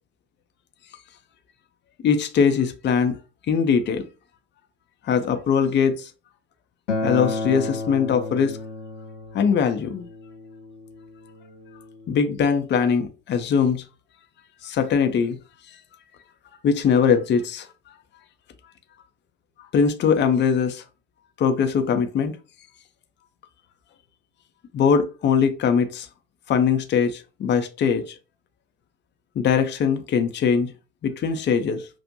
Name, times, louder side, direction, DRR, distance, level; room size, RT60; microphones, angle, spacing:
voice 1, 2.0-3.2 3.5-4.1 5.0-6.1 7.0-8.6 9.3-10.0 12.1-13.8 14.6-15.4 16.6-17.7 19.7-20.8 21.4-22.4 24.7-26.1 26.5-28.2 29.4-30.7 31.0-31.9, left 6 dB, 30° left, 0.7 m, -21 dB
Acoustic guitar, 6.9-12.1, left 2 dB, 80° left, 0.7 m, -32 dB
6.1 x 2.5 x 2.6 m
figure-of-eight pair, 60°, 35 cm